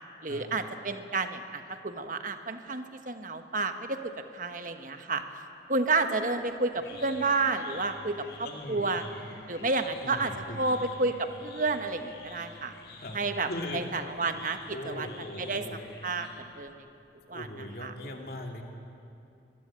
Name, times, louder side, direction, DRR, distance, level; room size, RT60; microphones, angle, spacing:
voice 1, 0.2-5.2 5.7-8.3 8.7-9.0 9.5-12.7 13.1-16.8 17.3-17.5 17.8-17.9, right 3 dB, 45° right, 8 dB, 1.3 m, -31 dB
sound 1, 6.3-16.7, left 2 dB, 70° left, 5.1 m, -49 dB
voice 2, 8.4-9.1 10.0-10.7 13.0-13.2 13.4-13.8 14.7-15.9 17.3-18.6, left 1 dB, 50° left, 2 dB, 2.7 m, -39 dB
23.5 x 21.0 x 9.0 m, 2.6 s
head